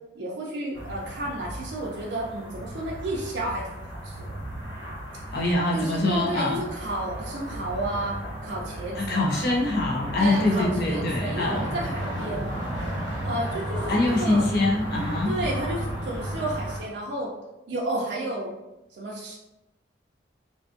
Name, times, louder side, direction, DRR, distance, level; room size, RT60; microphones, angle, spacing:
voice 1, 0.1-4.3 5.7-9.4 10.2-12.7 13.2-14.5 14.9-17.3 17.7-18.5 19.0-19.4, right 1 dB, 65° right, -4 dB, 0.4 m, -32 dB
sound 1, 0.7-16.8, right 1 dB, 90° left, 1.4 m, -34 dB
voice 2, 5.3-6.6 9.0-11.6 13.9-15.3, left 2 dB, 55° left, -3 dB, 0.4 m, -24 dB
2.5 x 2.4 x 2.4 m, 0.98 s
head